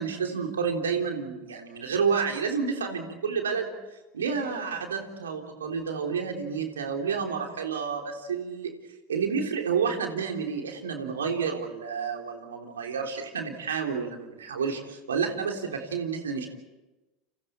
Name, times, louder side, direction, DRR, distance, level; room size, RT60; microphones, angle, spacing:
voice 1, 0.0-3.7 4.1-8.7 9.1-16.5, right 6 dB, 80° right, 3 dB, 3.4 m, -30 dB
29.5 x 29.5 x 4.4 m, 1.1 s
figure-of-eight pair, 80°, 0 cm